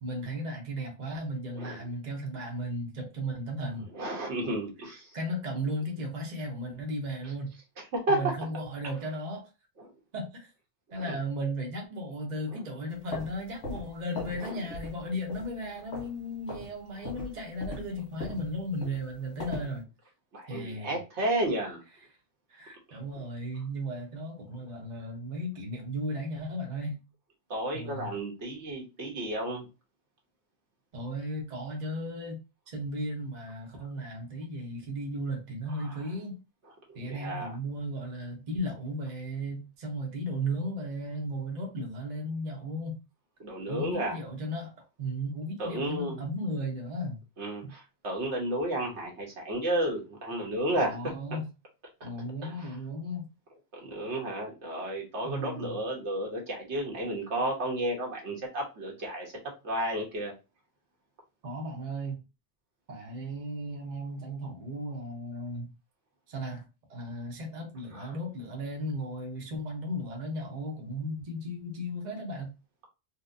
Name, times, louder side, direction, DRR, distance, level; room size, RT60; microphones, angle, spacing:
voice 1, 0.0-3.9 5.1-7.6 8.1-9.5 10.1-10.5 10.9-19.9 20.5-21.0 22.5-27.0 27.7-28.1 30.9-32.4 32.7-36.4 36.9-43.0 43.7-44.7 45.0-47.2 47.6-47.7 50.7-51.5 52.0-53.3 55.2-55.8 61.4-62.2 62.9-65.7 66.3-66.6 66.9-72.5, equal, 40° right, 0.9 m, -35 dB
voice 2, 3.9-5.2 7.2-7.3 8.1-8.2 9.8-9.9 11.0-11.2 12.5-12.6 14.4-14.6 20.3-21.8 22.9-23.2 27.5-29.7 35.8-36.0 36.9-37.5 43.4-44.2 45.6-46.2 47.4-51.0 52.0-52.1 52.4-52.7 53.8-59.3 59.6-60.3 67.9-68.1, right 1 dB, 75° right, 1.4 m, -32 dB
sound 1, 12.9-14.4 14.7-15.0 15.3-16.2 16.5-16.7 17.0-19.7, left 2 dB, 80° left, 1.5 m, -39 dB
4.1 x 2.2 x 2.6 m
omnidirectional pair, 1.2 m